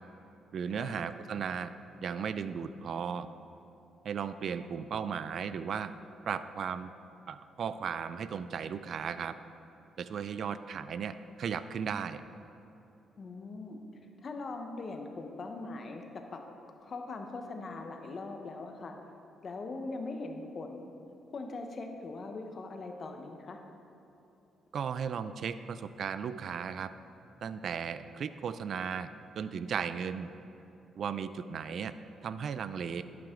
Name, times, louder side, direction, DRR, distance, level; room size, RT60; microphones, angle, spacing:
voice 1, 0.5-1.7 2.0-3.3 4.0-5.9 6.3-6.9 7.3-9.3 10.0-12.2 24.7-26.9 27.4-29.1 29.3-30.3 31.0-31.9 32.2-33.0, right 7 dB, 60° right, 12 dB, 0.4 m, -36 dB
voice 2, 13.2-13.8 14.2-16.4 16.8-19.0 19.4-20.9 21.3-23.6, left 3 dB, 45° left, 4 dB, 1.1 m, -41 dB
11.5 x 9.3 x 3.8 m, 3.0 s
cardioid pair, 90°, 0 cm